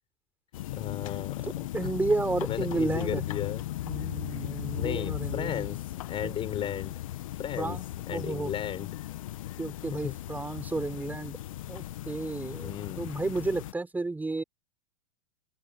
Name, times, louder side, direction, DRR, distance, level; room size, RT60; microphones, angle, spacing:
sound 1, 0.5-13.7, left 14 dB, 65° left, 1.7 m, -37 dB
voice 1, 0.7-1.9 2.5-3.6 4.7-5.8 6.1-6.9 7.4-7.8 8.1-8.9 10.0-10.2 12.6-13.1, left 10 dB, 30° left, 6.5 m, -35 dB
voice 2, 1.4-3.2 3.8-5.7 6.2-6.3 7.6-7.8 8.1-8.5 9.6-11.4 11.7-14.4, right 3 dB, 10° right, 6.1 m, -32 dB
open air
hypercardioid pair, 105°, 18 cm